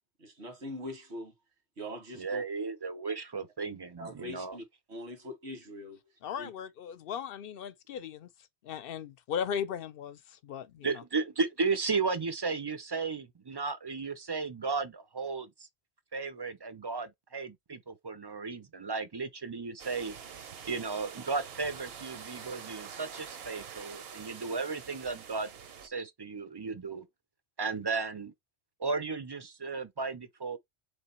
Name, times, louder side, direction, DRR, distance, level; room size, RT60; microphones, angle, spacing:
voice 1, 0.2-1.3 1.8-2.4 4.0-4.6 4.9-6.0 6.4-6.5, left 1 dB, 85° right, 1.8 m, -42 dB
voice 2, 2.1-4.6 10.8-15.7 16.1-20.1 20.7-25.5 25.8-27.1 27.6-28.3 28.8-30.6, right 4 dB, 35° right, 0.4 m, -34 dB
voice 3, 6.2-8.3 8.6-11.0, left 8 dB, 65° left, 0.7 m, -37 dB
sound 1, 19.8-25.9, right 7 dB, 65° right, 0.9 m, -46 dB
3.7 x 3.3 x 4.2 m
omnidirectional pair, 1.1 m